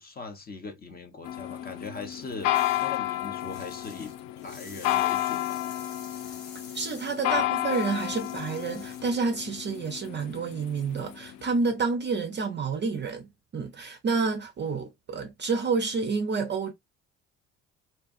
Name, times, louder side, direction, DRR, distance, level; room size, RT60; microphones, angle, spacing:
voice 1, 0.0-2.5 2.8-4.1 4.4-5.7 7.3-7.6, left 4 dB, 20° left, 0.7 m, -40 dB
sound 1, 1.2-11.4, left 15 dB, 55° left, 0.5 m, -31 dB
sound 2, 2.5-3.0 3.4-9.2, left 4 dB, 90° left, 0.7 m, -48 dB
voice 2, 6.7-16.7, right 4 dB, 25° right, 0.5 m, -29 dB
2.7 x 2.3 x 2.4 m
hypercardioid pair, 55°, 41 cm